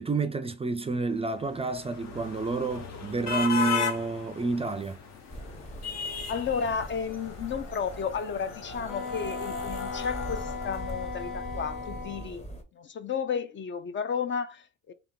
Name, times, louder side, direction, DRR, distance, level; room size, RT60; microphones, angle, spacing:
voice 1, 0.0-5.0, right 3 dB, 20° right, 0.4 m, -29 dB
sound 1, 1.2-11.5, left 6 dB, 60° left, 0.9 m, -37 dB
sound 2, 5.3-12.6, right 1 dB, 20° left, 0.9 m, -42 dB
voice 2, 6.3-12.5 12.7-14.9, left 6 dB, 40° left, 0.4 m, -33 dB
Wind instrument woodwind instrument, 8.9-12.3, left 5 dB, 85° left, 1.1 m, -37 dB
3.4 x 2.8 x 3.7 m
cardioid pair, 90°, 30 cm